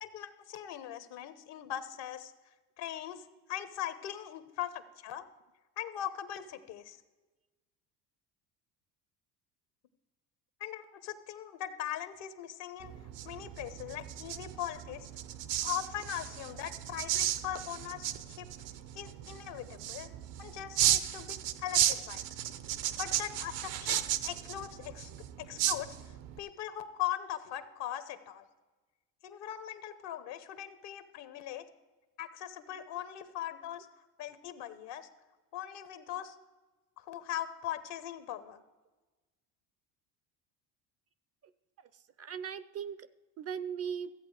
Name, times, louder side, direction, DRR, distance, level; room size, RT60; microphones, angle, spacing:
voice 1, 0.0-2.3 2.8-3.2 3.5-5.2 5.8-7.0 10.6-12.9 13.2-15.1 15.6-18.5 18.9-20.1 20.4-22.2 23.0-25.1 25.4-28.4 29.2-31.6 32.2-33.9 34.2-35.1 35.5-36.4 37.0-38.6, left 11 dB, 70° left, 12 dB, 1.1 m, -40 dB
sound 1, 12.8-26.4, right 12 dB, 75° right, 0.8 m, -34 dB
voice 2, 41.8-43.1 43.4-44.1, right 7 dB, 35° right, 16 dB, 0.5 m, -39 dB
14.5 x 8.1 x 4.8 m, 1.2 s
supercardioid pair, 85°, 44 cm